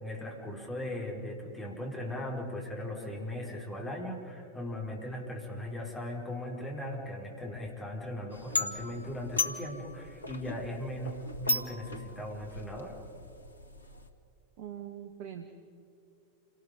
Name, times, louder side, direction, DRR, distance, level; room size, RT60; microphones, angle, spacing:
voice 1, 0.0-11.2 11.4-13.0, left 1 dB, 10° left, -2 dB, 5.0 m, -38 dB
sound 1, 8.3-14.1, left 2 dB, 80° left, 1.3 m, -36 dB
voice 2, 14.6-15.5, right 10 dB, 45° right, 6 dB, 1.5 m, -42 dB
28.5 x 19.0 x 5.4 m, 2.5 s
figure-of-eight pair, 90°, 0 cm